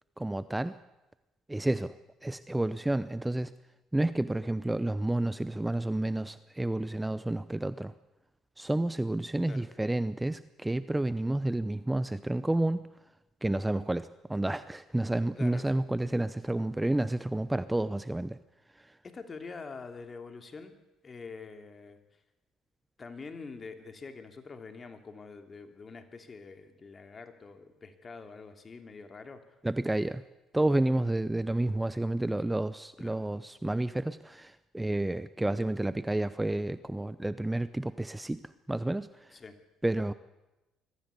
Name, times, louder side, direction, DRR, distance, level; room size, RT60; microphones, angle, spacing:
voice 1, 0.2-0.8 1.5-2.0 2.2-3.5 3.9-7.9 8.6-12.8 13.4-18.4 18.8-18.9 29.6-30.2 30.5-38.4 38.7-39.4 39.8-40.1, right 1 dB, 10° right, 15 dB, 0.7 m, -30 dB
voice 2, 15.4-15.8 19.0-20.7 21.0-22.0 23.0-29.4 33.0-33.2 39.3-39.6, left 4 dB, 35° left, 7 dB, 2.9 m, -45 dB
22.5 x 14.5 x 8.5 m, 1.0 s
hypercardioid pair, 65°, 0 cm